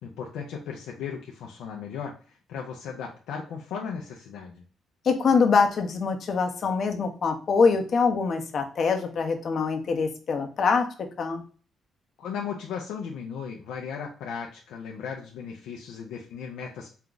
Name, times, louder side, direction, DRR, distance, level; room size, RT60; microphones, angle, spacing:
voice 1, 0.0-4.6 12.2-16.9, left 6 dB, 85° left, 0 dB, 0.6 m, -36 dB
voice 2, 5.0-10.9 11.2-11.4, left 5 dB, 55° left, 4 dB, 0.9 m, -24 dB
4.5 x 2.4 x 3.8 m, 0.39 s
cardioid pair, 90°, 0 cm